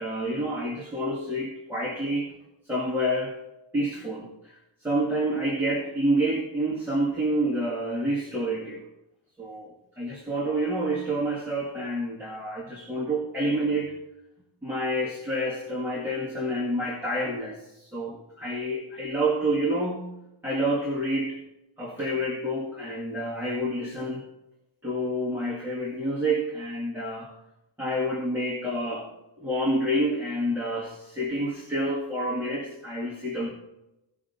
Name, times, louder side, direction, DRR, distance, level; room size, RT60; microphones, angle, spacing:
voice 1, 0.0-2.4 2.7-3.4 3.7-8.9 9.4-14.0 14.6-20.1 20.4-21.4 21.8-24.2 24.8-27.4 27.8-33.5, right 1 dB, 5° right, -6 dB, 2.0 m, -28 dB
17.0 x 6.0 x 4.0 m, 0.91 s
wide cardioid pair, 175°, 44 cm